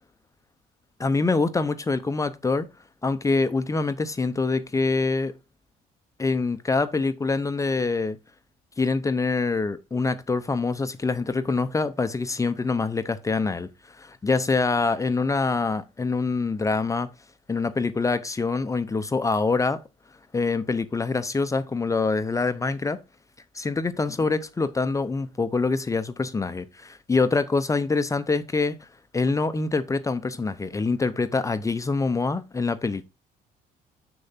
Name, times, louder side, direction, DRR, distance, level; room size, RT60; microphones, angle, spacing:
voice 1, 1.0-2.7 3.0-5.4 6.2-8.2 8.8-13.7 14.0-17.1 17.5-19.8 20.3-23.0 23.5-28.8 29.1-33.1, left 3 dB, 20° left, 0.7 m, -25 dB
6.9 x 6.5 x 4.1 m
cardioid pair, 110°, 17 cm